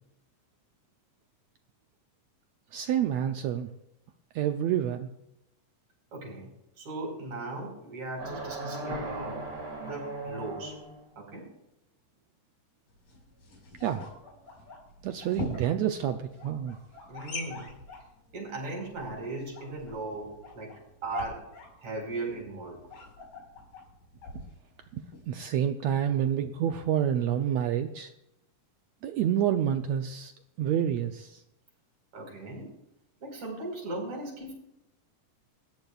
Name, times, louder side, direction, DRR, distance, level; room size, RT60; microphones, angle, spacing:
voice 1, 2.7-3.7 4.3-5.1 13.8-14.0 15.0-16.8 24.9-28.1 29.0-30.3 30.6-31.4, right 10 dB, 85° right, 7 dB, 1.5 m, -28 dB
voice 2, 6.1-6.5 6.8-9.4 9.8-10.8 11.2-11.5 17.1-17.7 18.3-20.7 21.0-21.4 21.8-22.8 32.1-32.7 33.2-34.5, right 2 dB, 55° right, 0 dB, 5.9 m, -37 dB
sound 1, 8.2-11.0, right 2 dB, 30° right, 2.4 m, -37 dB
sound 2, 12.9-25.3, left 3 dB, 70° left, 6.6 m, -44 dB
28.0 x 13.5 x 2.4 m, 0.87 s
omnidirectional pair, 3.9 m